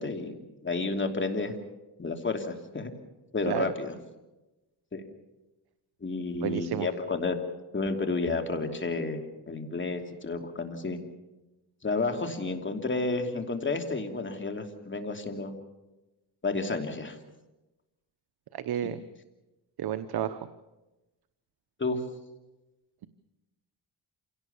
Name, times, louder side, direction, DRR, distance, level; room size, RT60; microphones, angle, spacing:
voice 1, 0.0-1.6 2.0-2.9 3.3-4.0 4.9-5.0 6.0-7.4 7.7-11.0 11.8-15.5 16.4-17.2 18.8-18.9 21.8-22.0, left 3 dB, 30° left, 5 dB, 2.9 m, -31 dB
voice 2, 6.4-6.9 18.6-19.0 19.8-20.4, right 10 dB, 65° right, 11 dB, 1.0 m, -30 dB
27.0 x 17.5 x 7.1 m, 1.0 s
cardioid pair, 90°, 42 cm